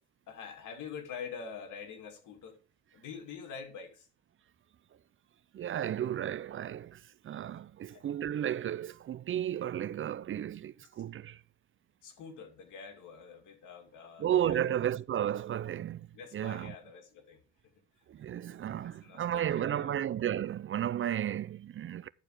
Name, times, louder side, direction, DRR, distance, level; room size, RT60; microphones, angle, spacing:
voice 1, 0.3-2.6 2.9-4.1 7.9-8.0 10.9-11.0 12.0-14.8 16.1-17.4 18.2-18.3 18.8-20.0, left 6 dB, 85° left, 2.5 m, -46 dB
voice 2, 5.5-11.4 14.2-16.1 16.3-16.7 18.1-22.1, right 10 dB, 45° right, 0.4 m, -33 dB
10.5 x 4.6 x 6.4 m
cardioid pair, 90°, 30 cm